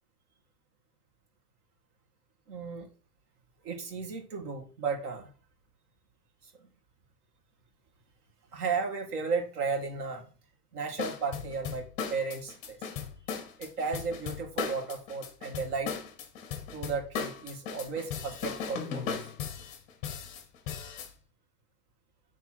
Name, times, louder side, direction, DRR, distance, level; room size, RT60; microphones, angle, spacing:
voice 1, 2.5-2.9 3.6-5.3 6.4-6.5 8.5-10.3 10.7-12.8 13.6-15.9 16.7-19.3, right 5 dB, 65° right, 3 dB, 2.2 m, -34 dB
sound 1, 11.0-21.1, left 6 dB, 15° left, 0.6 m, -37 dB
8.2 x 3.6 x 4.5 m, 0.37 s
supercardioid pair, 165°, 49 cm